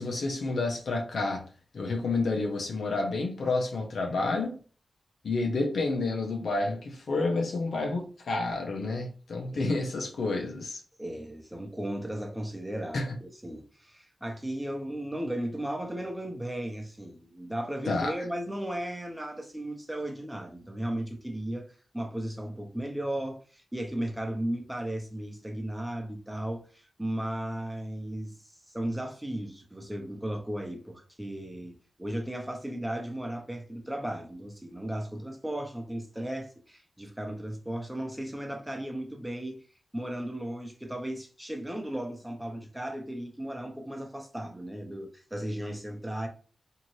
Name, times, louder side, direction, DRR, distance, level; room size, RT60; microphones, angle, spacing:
voice 1, 0.0-1.5 1.7-4.6 5.2-10.8 12.9-13.2 17.9-18.1, left 3 dB, 75° left, 0.8 m, -29 dB
voice 2, 11.0-39.6 39.9-46.3, right 1 dB, 10° right, 1.0 m, -35 dB
2.7 x 2.5 x 3.1 m
cardioid pair, 45°, 0 cm